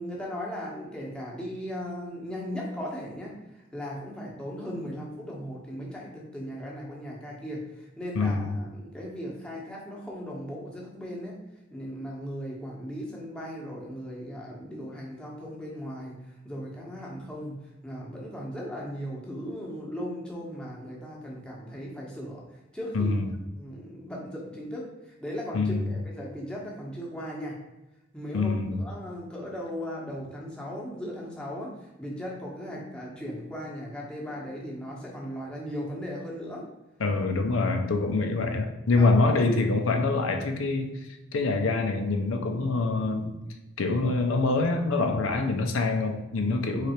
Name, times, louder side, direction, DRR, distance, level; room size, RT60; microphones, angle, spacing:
voice 1, 0.0-11.4 11.7-16.1 16.4-17.5 17.8-22.4 22.7-23.1 23.6-27.6 28.1-31.7 32.0-36.6 38.9-39.4, equal, 5° left, -4 dB, 0.9 m, -37 dB
voice 2, 8.1-8.6 22.9-23.4 25.5-25.9 28.3-28.8 37.0-41.0 41.3-43.3 43.8-46.9, left 3 dB, 90° left, 5 dB, 0.6 m, -25 dB
3.8 x 3.3 x 4.3 m, 1.0 s
head